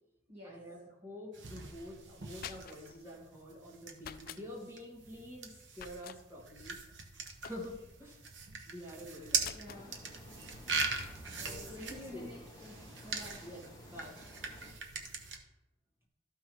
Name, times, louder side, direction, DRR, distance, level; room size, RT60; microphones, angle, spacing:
voice 1, 0.4-6.8 7.4-8.2 8.6-9.6 11.3-12.3 13.4-14.2, left 1 dB, 15° right, -3 dB, 2.0 m, -48 dB
sound 1, 1.3-15.4, right 4 dB, 70° right, 1.1 m, -41 dB
sound 2, 2.1-3.0 4.0-4.4 5.7-6.2 7.4-7.9 9.4-9.9, left 8 dB, 50° left, 0.4 m, -47 dB
voice 2, 9.0-9.9 11.4-12.7 13.0-13.4, left 1 dB, 35° right, -6 dB, 1.7 m, -50 dB
sound 3, 9.7-14.7, left 1 dB, 20° left, 1.1 m, -54 dB
13.0 x 5.7 x 3.1 m, 1.0 s
head